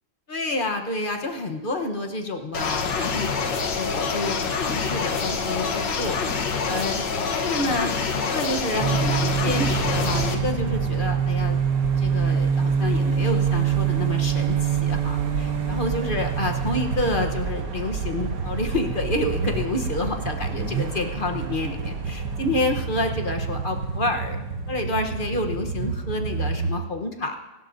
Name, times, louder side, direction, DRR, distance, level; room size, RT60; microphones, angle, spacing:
voice 1, 0.3-6.2 6.7-7.0 7.3-11.6 12.0-24.4 24.7-27.5, left 2 dB, 35° left, 4 dB, 1.1 m, -29 dB
sound 1, 2.5-10.4, left 5 dB, 85° left, 1.8 m, -26 dB
sound 2, 8.8-26.7, right 6 dB, 75° right, 1.8 m, -26 dB
25.0 x 12.0 x 2.7 m, 1.1 s
omnidirectional pair, 1.9 m